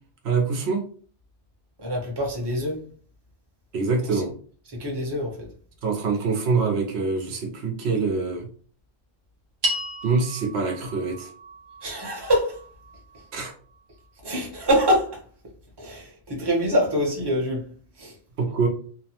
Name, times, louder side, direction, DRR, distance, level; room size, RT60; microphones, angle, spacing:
voice 1, 0.2-0.8 3.7-4.3 5.8-8.5 10.0-11.3 13.3-13.5 18.4-18.7, right 4 dB, 80° right, 0.9 m, -25 dB
voice 2, 1.8-2.8 4.1-4.2 4.8-5.5 11.8-12.6 14.2-15.2 15.8-17.7 18.0-18.1, equal, 25° right, 0.8 m, -25 dB
sound 1, 9.6-14.1, right 1 dB, 55° right, 1.0 m, -35 dB
2.8 x 2.1 x 2.8 m
omnidirectional pair, 1.1 m